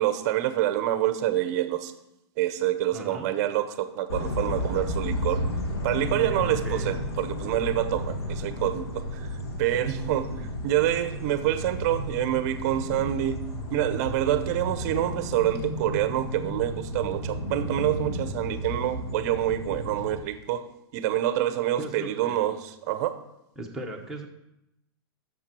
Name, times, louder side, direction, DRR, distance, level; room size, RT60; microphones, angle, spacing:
voice 1, 0.0-1.9 2.4-5.4 5.8-13.4 13.7-20.7 20.9-23.1, right 13 dB, 40° right, 11 dB, 0.7 m, -27 dB
voice 2, 2.9-3.3 6.4-7.1 19.7-19.9 21.8-22.4 23.6-24.3, right 1 dB, 5° right, -2 dB, 1.0 m, -38 dB
sound 1, 4.1-20.2, left 1 dB, 90° left, 1.8 m, -33 dB
7.3 x 6.8 x 6.1 m, 0.87 s
hypercardioid pair, 155°, 13 cm